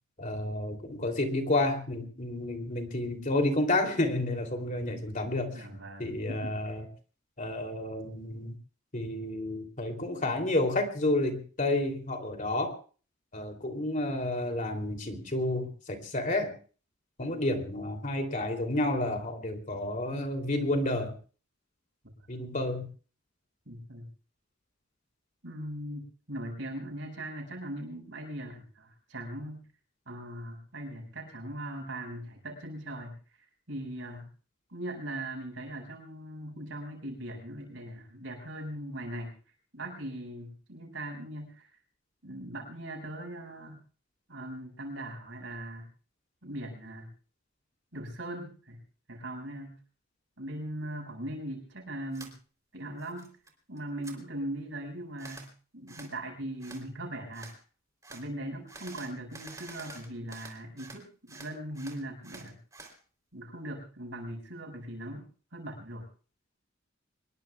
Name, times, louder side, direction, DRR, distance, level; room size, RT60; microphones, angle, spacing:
voice 1, 0.2-6.9 7.4-8.6 8.9-12.7 13.3-16.5 17.2-21.1 22.3-22.9, left 1 dB, 40° left, 4 dB, 3.1 m, -30 dB
voice 2, 5.5-6.8 23.7-24.1 25.4-29.7 30.1-34.3 34.7-39.4 39.7-41.7 42.2-43.8 44.3-45.9 46.4-47.1 47.9-48.8 49.1-49.8 50.4-52.4 52.7-53.3 53.7-57.5 58.1-62.6 63.3-66.1, right 1 dB, 65° right, 2 dB, 6.9 m, -40 dB
sound 1, 52.1-52.3 52.7-53.5 53.8-54.2 55.2-55.5 55.9-56.1 56.6-56.8 57.3-57.6 58.0-58.2 58.7-61.0 61.3-62.9, right 3 dB, 15° right, 3.4 m, -48 dB
25.5 x 21.0 x 2.4 m, 0.40 s
head